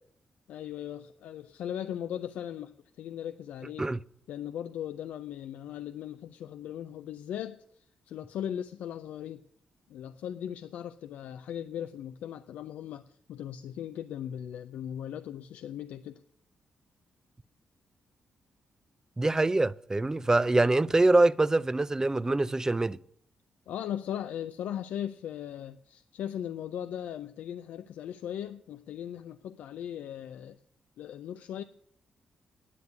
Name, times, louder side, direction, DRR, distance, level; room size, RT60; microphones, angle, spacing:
voice 1, 0.5-3.9 4.3-9.4 9.9-16.2 23.7-30.6 31.0-31.6, left 10 dB, 80° left, 0.4 m, -38 dB
voice 2, 19.2-23.0, right 2 dB, 20° right, 0.5 m, -24 dB
9.9 x 7.9 x 9.3 m
supercardioid pair, 55°, 3 cm